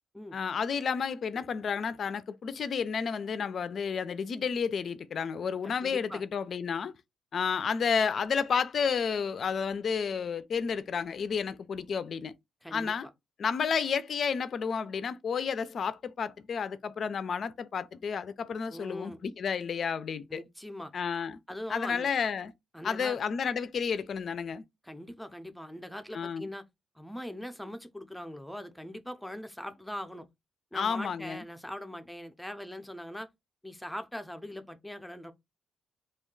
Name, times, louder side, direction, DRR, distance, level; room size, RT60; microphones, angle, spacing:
voice 1, 0.3-6.9 7.3-12.3 12.7-13.1 13.4-20.4 20.9-21.4 21.7-22.5 22.8-24.6 26.1-26.5 30.7-31.4, left 6 dB, 55° left, 0.3 m, -31 dB
voice 2, 5.6-6.2 12.6-12.9 18.7-19.3 20.3-20.9 21.5-22.1 22.7-23.2 24.8-26.6 27.0-30.3 30.7-33.3 33.6-35.3, left 1 dB, 5° left, 0.5 m, -41 dB
2.3 x 2.2 x 3.7 m
cardioid pair, 75°, 0 cm